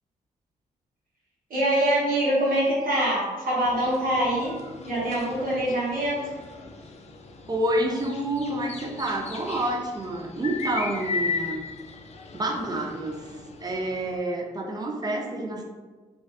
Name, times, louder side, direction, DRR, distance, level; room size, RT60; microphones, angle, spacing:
voice 1, 1.5-4.5 4.8-6.3, right 1 dB, 65° right, -7 dB, 0.9 m, -24 dB
sound 1, 3.6-14.2, left 4 dB, 45° left, 0.4 m, -37 dB
voice 2, 7.5-11.6 12.3-15.6, right 1 dB, 25° right, 1 dB, 0.5 m, -28 dB
2.6 x 2.2 x 2.4 m, 1.3 s
supercardioid pair, 55°, 16 cm